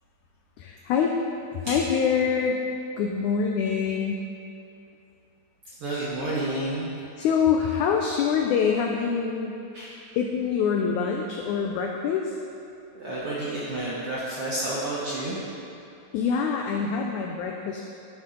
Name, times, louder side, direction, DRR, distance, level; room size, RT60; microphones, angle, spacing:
voice 1, 0.6-1.1 1.5-2.6 3.0-4.2 7.2-9.6 10.1-12.3 16.1-17.8, left 6 dB, 85° left, 1 dB, 1.7 m, -25 dB
voice 2, 5.8-6.9 9.7-10.0 12.9-15.4, right 1 dB, 70° right, -7 dB, 1.3 m, -30 dB
12.0 x 5.8 x 3.8 m, 2.6 s
omnidirectional pair, 4.0 m